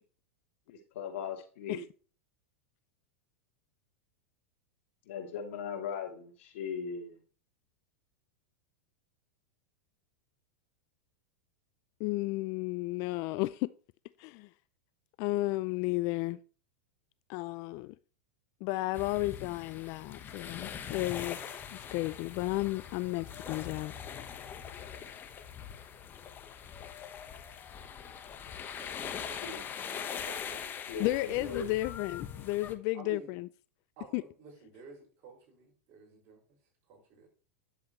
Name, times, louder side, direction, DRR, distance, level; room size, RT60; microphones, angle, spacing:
voice 1, 0.7-1.8 5.1-7.2 29.4-29.6 30.9-31.7, left 6 dB, 70° left, 3.1 m, -39 dB
voice 2, 12.0-13.7 14.2-14.5 15.2-16.4 17.3-17.9 18.6-23.9 31.0-33.5 34.1-34.2, left 19 dB, 50° left, 0.4 m, -33 dB
sound 1, 18.9-32.7, left 8 dB, 30° left, 1.2 m, -42 dB
voice 3, 28.8-30.9 31.3-31.6 32.9-33.4 34.0-36.4 36.9-37.3, right 4 dB, 45° right, 5.9 m, -52 dB
10.5 x 7.9 x 3.2 m
hypercardioid pair, 115°, 7 cm